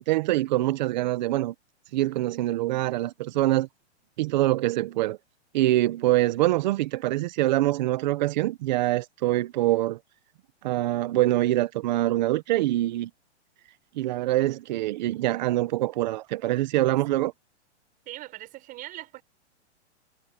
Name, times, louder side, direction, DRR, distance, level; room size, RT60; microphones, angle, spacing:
voice 1, 0.0-1.5 1.9-3.7 4.2-5.2 5.5-10.0 10.6-13.1 13.9-17.3, right 16 dB, 40° right, 1.1 m, -24 dB
voice 2, 18.1-19.2, right 16 dB, 25° right, 6.1 m, -40 dB
hypercardioid pair, 160°, 35 cm